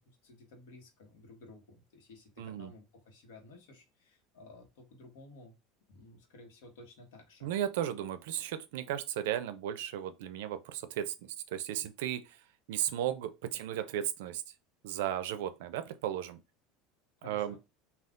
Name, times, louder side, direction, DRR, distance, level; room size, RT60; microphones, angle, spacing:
voice 1, 0.0-5.5 5.9-7.5 17.2-17.6, left 2 dB, 85° left, 1.1 m, -54 dB
voice 2, 2.4-2.7 7.4-12.4 12.7-14.4 14.8-16.4 17.2-17.6, right 11 dB, 80° right, 0.4 m, -35 dB
2.4 x 2.3 x 3.5 m
cardioid pair, 175°, 0 cm